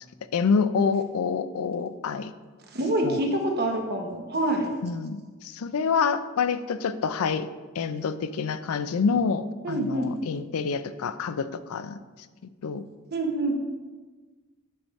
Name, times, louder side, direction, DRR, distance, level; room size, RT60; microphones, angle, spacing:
voice 1, 0.3-2.3 3.0-3.2 4.8-7.5 7.8-12.0 12.6-12.8, left 5 dB, 85° left, 13 dB, 0.4 m, -27 dB
voice 2, 2.7-4.7 9.6-10.2 13.1-13.5, right 1 dB, 50° right, 2 dB, 1.0 m, -26 dB
10.0 x 4.9 x 3.1 m, 1.3 s
head